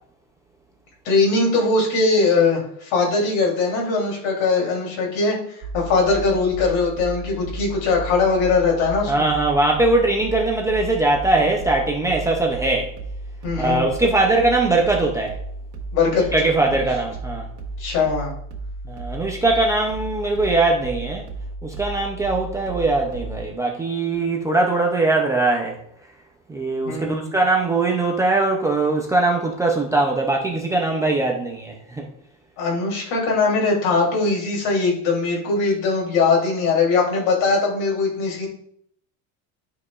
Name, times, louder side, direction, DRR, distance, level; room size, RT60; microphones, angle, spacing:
voice 1, 1.0-5.4 5.7-9.3 13.4-13.8 15.9-16.3 17.8-18.3 26.8-27.3 32.6-38.5, left 4 dB, 70° left, 3.1 m, -20 dB
sound 1, 5.6-23.5, right 2 dB, 90° right, 2.0 m, -34 dB
voice 2, 9.1-12.9 13.6-15.4 16.3-17.5 18.9-21.2 21.6-25.8 26.5-32.1, right 2 dB, 10° right, 0.4 m, -21 dB
12.0 x 4.7 x 2.4 m
cardioid pair, 175°, 37 cm